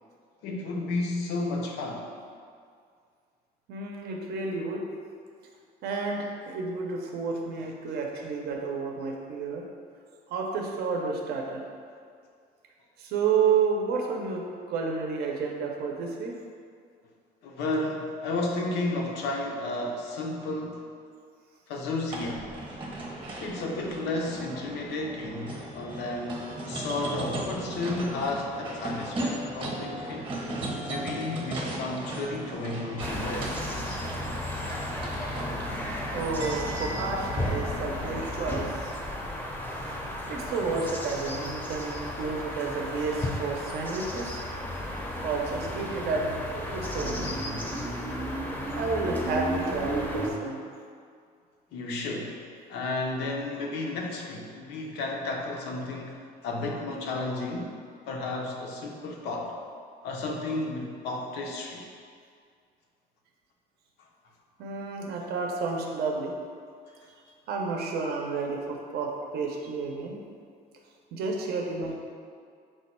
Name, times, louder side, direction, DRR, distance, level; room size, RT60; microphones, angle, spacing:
voice 1, 0.4-2.1 17.4-20.9 21.7-22.5 23.4-30.3 30.9-33.7 51.7-52.4 52.7-57.8 58.1-59.5 60.0-61.9, left 2 dB, 85° left, 0 dB, 0.6 m, -32 dB
voice 2, 3.7-4.8 5.8-9.6 10.3-11.6 13.0-16.3 36.1-39.0 40.3-44.4 45.2-47.3 48.8-50.6 64.6-66.3 67.5-70.2 71.1-71.9, right 4 dB, 70° right, 0 dB, 0.6 m, -30 dB
sound 1, 22.1-38.3, right 1 dB, 30° right, 0.8 m, -36 dB
sound 2, 33.0-50.3, left 1 dB, 10° left, 0.5 m, -34 dB
4.5 x 2.2 x 4.2 m, 2.2 s
cardioid pair, 110°, 17 cm